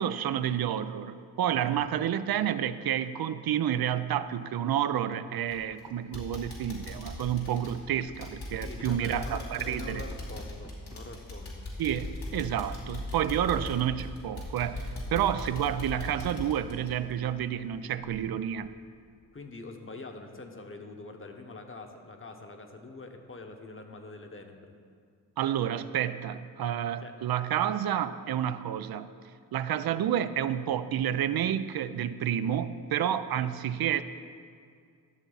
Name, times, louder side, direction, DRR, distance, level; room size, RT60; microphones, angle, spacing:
voice 1, 0.0-10.0 11.8-18.7 25.4-29.1 29.5-34.0, right 10 dB, 70° right, 12 dB, 0.5 m, -30 dB
voice 2, 1.5-1.9 8.6-11.6 19.3-24.7 27.0-27.1 33.4-33.5, left 3 dB, 35° left, 4 dB, 1.1 m, -45 dB
sound 1, 5.0-11.2, right 1 dB, 10° right, 1.0 m, -51 dB
sound 2, 5.5-5.8 6.1-17.7 18.0-18.2 18.6-18.7, left 1 dB, 80° left, 2.3 m, -39 dB
12.5 x 7.1 x 4.0 m, 2.2 s
cardioid pair, 65°, 38 cm